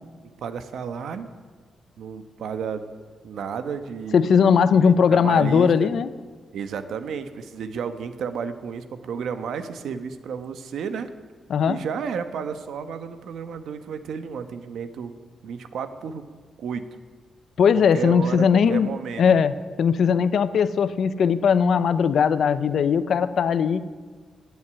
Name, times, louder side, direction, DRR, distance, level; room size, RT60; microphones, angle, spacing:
voice 1, 0.4-1.3 2.0-2.8 3.2-5.9 6.5-11.1 11.7-15.1 15.4-16.3 16.6-16.9 17.7-19.2, right 6 dB, 75° right, 10 dB, 1.2 m, -32 dB
voice 2, 4.1-6.1 11.5-11.8 17.6-18.9 19.2-23.9, left 6 dB, 55° left, 14 dB, 0.7 m, -19 dB
17.5 x 8.2 x 9.9 m, 1.5 s
wide cardioid pair, 165°, 0 cm